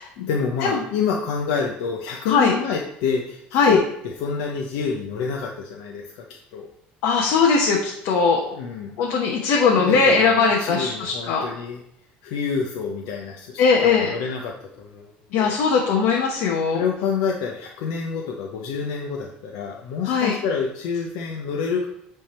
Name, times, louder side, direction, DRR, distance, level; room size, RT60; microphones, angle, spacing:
voice 1, 0.3-6.2 6.5-6.7 8.5-9.0 9.7-11.8 12.2-15.5 16.7-21.9, left 5 dB, 90° left, 0 dB, 0.8 m, -27 dB
voice 2, 7.0-8.4 9.0-11.4 13.6-14.1 15.3-16.8 20.1-20.3, left 5 dB, 70° left, -1 dB, 1.1 m, -19 dB
8.8 x 3.5 x 4.3 m, 0.77 s
cardioid pair, 155°, 4 cm